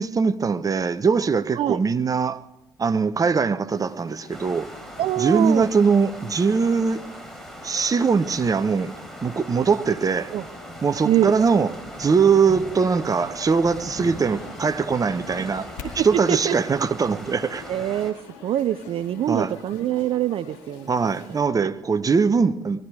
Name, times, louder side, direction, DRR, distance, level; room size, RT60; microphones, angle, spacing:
voice 1, 0.0-2.4 2.8-4.7 5.2-7.0 7.6-8.9 9.2-10.3 10.8-11.7 12.0-15.7 15.9-17.6 19.3-19.5 20.9-22.8, right 5 dB, 30° right, 0.9 m, -21 dB
sound 1, 3.7-21.4, left 6 dB, 70° left, 2.1 m, -46 dB
sound 2, 4.3-18.1, right 1 dB, 5° left, 4.0 m, -40 dB
voice 2, 5.0-5.7 10.3-10.4 11.0-11.3 15.4-15.5 15.8-16.5 17.7-20.9 21.6-21.7, right 12 dB, 50° right, 0.5 m, -24 dB
19.5 x 13.5 x 4.9 m
hypercardioid pair, 50°, 12 cm